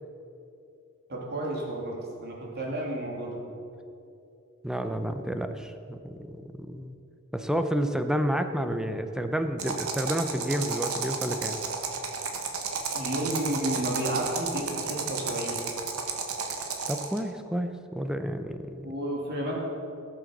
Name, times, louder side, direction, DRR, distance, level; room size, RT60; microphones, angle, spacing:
voice 1, 1.1-3.4 12.9-15.6 18.8-19.6, right 1 dB, 50° right, -2 dB, 3.2 m, -32 dB
voice 2, 4.6-7.0 7.3-11.6 16.9-18.9, equal, 5° right, 7 dB, 0.7 m, -30 dB
sound 1, 9.6-17.2, right 5 dB, 75° right, 1.6 m, -32 dB
18.0 x 7.7 x 6.7 m, 2.7 s
head